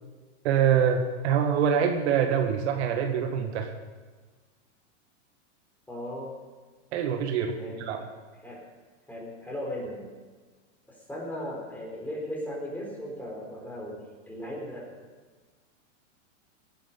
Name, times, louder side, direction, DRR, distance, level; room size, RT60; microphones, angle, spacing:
voice 1, 0.4-3.7 6.9-8.0, right 8 dB, 65° right, 5 dB, 1.8 m, -25 dB
voice 2, 5.9-6.3 7.5-8.1 8.4-8.7 9.1-10.1 10.9-14.9, equal, 5° left, -2 dB, 4.4 m, -37 dB
18.0 x 10.5 x 5.6 m, 1.4 s
hypercardioid pair, 135°, 36 cm